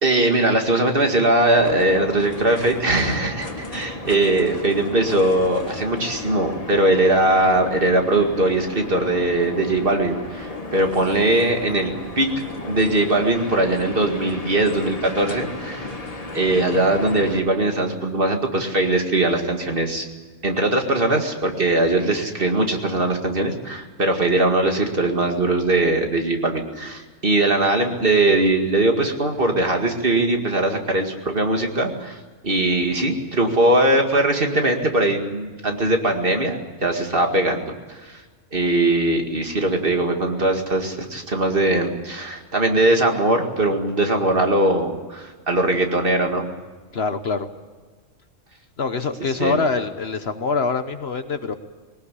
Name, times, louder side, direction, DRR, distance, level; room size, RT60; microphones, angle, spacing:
voice 1, 0.0-12.3 12.7-15.9 16.3-20.1 20.4-32.2 32.4-37.6 37.9-38.2 38.5-46.5 49.4-49.6, right 2 dB, 40° right, 3 dB, 2.3 m, -20 dB
sound 1, 1.5-17.4, left 2 dB, 30° left, 1.7 m, -34 dB
voice 2, 46.9-47.5 48.8-51.5, left 4 dB, 50° left, 9 dB, 1.2 m, -24 dB
20.5 x 18.5 x 8.4 m, 1.4 s
omnidirectional pair, 1.4 m